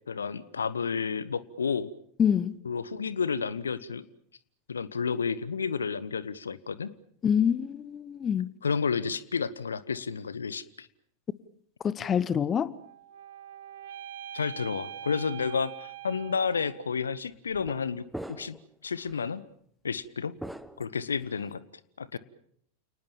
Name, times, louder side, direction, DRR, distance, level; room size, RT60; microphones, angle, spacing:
voice 1, 0.1-1.9 2.6-4.1 4.7-6.9 8.6-10.9 14.3-18.6 18.8-19.4 19.8-20.4 20.8-21.6 22.0-22.2, left 5 dB, 70° left, 1.1 m, -31 dB
voice 2, 2.2-2.6 7.2-8.5 11.8-12.7, left 8 dB, 25° left, 0.9 m, -26 dB
sound 1, 12.7-17.0, right 10 dB, 60° right, 1.6 m, -43 dB
sound 2, 16.4-16.6 17.5-17.8 18.1-18.7 19.0-19.2 20.4-21.5, right 1 dB, ahead, 1.2 m, -42 dB
29.0 x 19.5 x 7.2 m
figure-of-eight pair, 90°, 0 cm